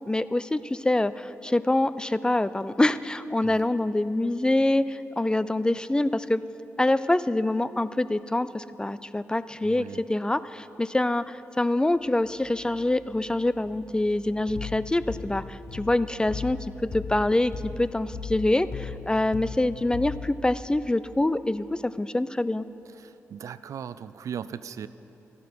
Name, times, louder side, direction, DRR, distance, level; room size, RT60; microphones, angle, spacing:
voice 1, 0.1-6.4 6.8-16.6 16.9-22.6, left 1 dB, 15° left, 15 dB, 0.3 m, -25 dB
voice 2, 9.6-10.0 23.0-24.9, right 8 dB, 70° right, 14 dB, 0.3 m, -38 dB
sound 1, 11.8-15.3, left 2 dB, 80° left, 3.3 m, -52 dB
sound 2, 14.4-20.5, left 5 dB, 60° left, 0.7 m, -38 dB
13.0 x 11.0 x 4.6 m, 3.0 s
supercardioid pair, 50°, 6 cm